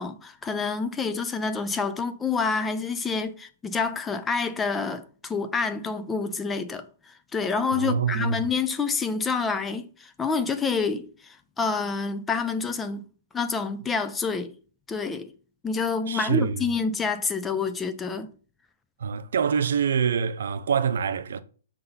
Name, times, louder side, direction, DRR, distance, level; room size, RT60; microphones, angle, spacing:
voice 1, 0.0-13.0 13.3-14.5 14.9-15.3 15.6-18.3, left 5 dB, 10° left, 0.4 m, -28 dB
voice 2, 7.7-8.4 16.1-16.7 19.0-21.4, right 7 dB, 70° right, 0.7 m, -25 dB
6.6 x 3.9 x 5.7 m
hypercardioid pair, 165°, 0 cm